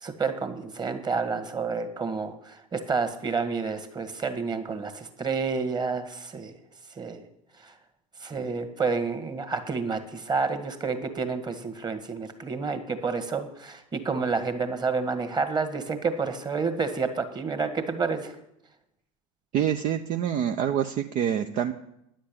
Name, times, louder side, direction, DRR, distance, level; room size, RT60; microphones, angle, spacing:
voice 1, 0.0-6.5 7.0-7.2 7.6-7.7 8.2-18.4, right 4 dB, 25° right, 9 dB, 1.8 m, -29 dB
voice 2, 19.5-21.7, right 9 dB, 45° right, 7 dB, 0.7 m, -26 dB
10.0 x 7.4 x 8.6 m, 0.80 s
hypercardioid pair, 80°, 18 cm